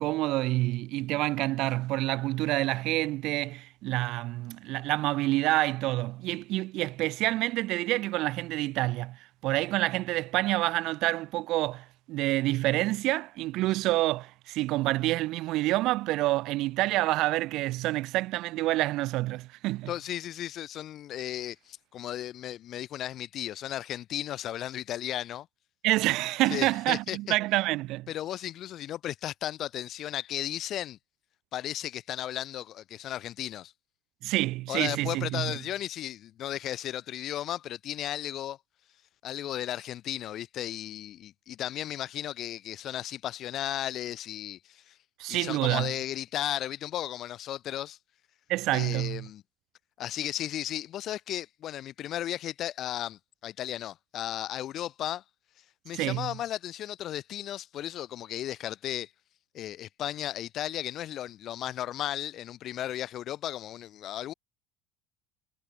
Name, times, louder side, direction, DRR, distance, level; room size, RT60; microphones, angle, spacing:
voice 1, 0.0-19.9 25.8-28.1 34.2-35.6 45.2-45.9 48.5-49.3 55.9-56.3, right 18 dB, 55° right, 6.7 m, -28 dB
voice 2, 19.9-25.5 26.5-27.2 28.1-31.0 31.5-33.7 34.7-38.6 39.2-45.0 45.3-48.0 48.7-49.4 50.0-55.2 55.8-59.1 59.5-64.3, left 12 dB, 40° left, 7.9 m, -35 dB
cardioid pair, 150°, 0 cm